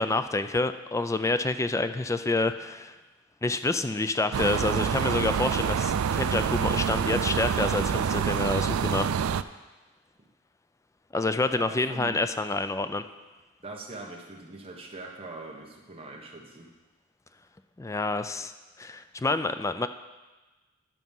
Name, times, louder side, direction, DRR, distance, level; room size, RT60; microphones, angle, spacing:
voice 1, 0.0-3.0 3.4-9.1 11.1-13.0 17.8-18.5 18.8-19.9, left 2 dB, 15° left, 10 dB, 0.4 m, -28 dB
sound 1, 4.3-9.4, right 7 dB, 80° right, 0.4 m, -27 dB
voice 2, 11.4-12.2 13.6-16.7, right 2 dB, 30° right, -1 dB, 1.4 m, -42 dB
11.5 x 6.0 x 5.4 m, 1.2 s
head